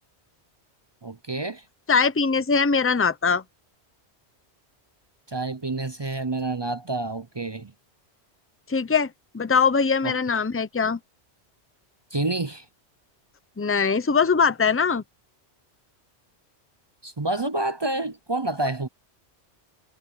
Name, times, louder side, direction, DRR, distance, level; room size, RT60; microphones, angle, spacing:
voice 1, 1.0-1.6 5.3-7.7 10.0-10.1 12.1-12.7 17.0-18.9, right 2 dB, 30° right, 0.5 m, -28 dB
voice 2, 1.9-3.4 8.7-11.0 13.6-15.0, left 5 dB, 15° left, 0.7 m, -22 dB
omnidirectional pair, 1.1 m